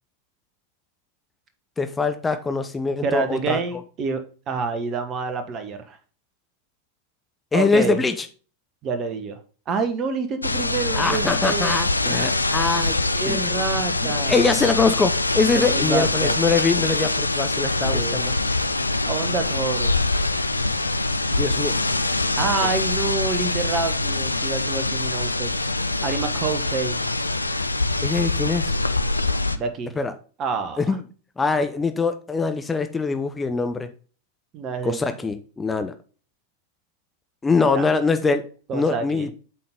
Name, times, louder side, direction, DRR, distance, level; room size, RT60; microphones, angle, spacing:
voice 1, 1.8-3.6 7.5-8.3 10.9-13.0 13.3-13.5 14.0-18.3 21.4-21.7 28.0-28.8 30.0-30.1 30.8-31.0 31.4-33.9 34.8-35.9 37.4-39.3, left 4 dB, 15° left, 0.6 m, -23 dB
voice 2, 3.0-6.0 7.5-8.0 8.8-9.4 9.7-11.7 13.1-14.4 15.7-16.3 17.9-18.2 19.0-20.0 22.4-25.5 26.0-27.0 29.5-29.9 30.4-31.0 34.5-35.1 37.7-37.8 38.7-39.3, right 4 dB, 30° right, 1.1 m, -27 dB
sound 1, 10.4-29.6, left 2 dB, 85° left, 0.4 m, -24 dB
8.3 x 3.9 x 3.6 m
figure-of-eight pair, 90°, 0 cm